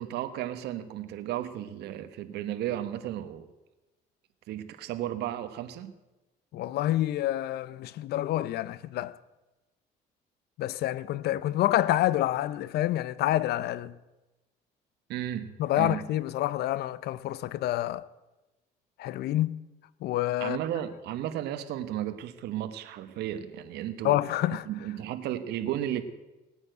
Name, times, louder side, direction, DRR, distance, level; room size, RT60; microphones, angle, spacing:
voice 1, 0.0-3.4 4.5-5.9 15.1-16.0 20.4-24.2 24.5-26.0, right 12 dB, 80° right, 1.2 m, -34 dB
voice 2, 6.5-9.2 10.6-14.0 15.6-18.1 19.0-19.6 20.0-20.6 24.0-24.7, left 14 dB, 70° left, 0.7 m, -28 dB
18.0 x 9.6 x 7.9 m
cardioid pair, 110°, 17 cm